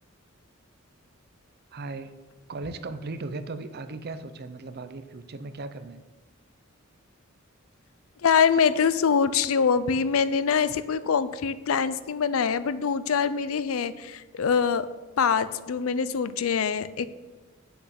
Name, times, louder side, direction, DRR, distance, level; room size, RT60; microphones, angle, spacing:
voice 1, 1.7-2.2 2.5-6.0, right 3 dB, 50° right, 10 dB, 0.6 m, -37 dB
voice 2, 8.2-14.9 15.2-17.1, left 6 dB, 75° left, 15 dB, 0.5 m, -24 dB
7.8 x 6.8 x 5.8 m, 1.2 s
head